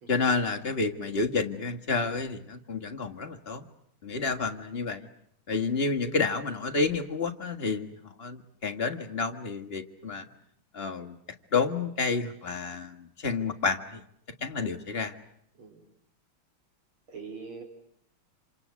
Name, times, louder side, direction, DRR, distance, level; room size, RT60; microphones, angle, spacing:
voice 1, 0.1-3.7 4.0-5.1 5.5-10.3 10.7-11.2 11.5-14.0 14.4-15.1, left 4 dB, 30° left, 5 dB, 1.7 m, -30 dB
voice 2, 17.1-17.6, right 5 dB, 80° right, 1 dB, 5.1 m, -43 dB
27.0 x 26.5 x 8.3 m, 0.73 s
omnidirectional pair, 2.3 m